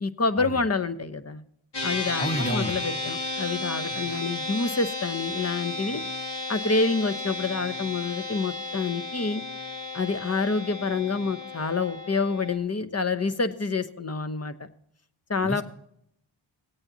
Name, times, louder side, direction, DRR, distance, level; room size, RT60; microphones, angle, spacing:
voice 1, 0.0-1.4 1.8-6.0 6.5-9.4 9.9-14.7 15.3-15.6, left 4 dB, 30° left, 11 dB, 1.0 m, -27 dB
sound 1, 1.7-12.6, left 2 dB, 60° left, 2.5 m, -33 dB
voice 2, 2.2-2.8 15.4-15.6, equal, 15° left, 4 dB, 1.7 m, -30 dB
17.5 x 8.8 x 2.8 m, 0.72 s
cardioid pair, 50°, 47 cm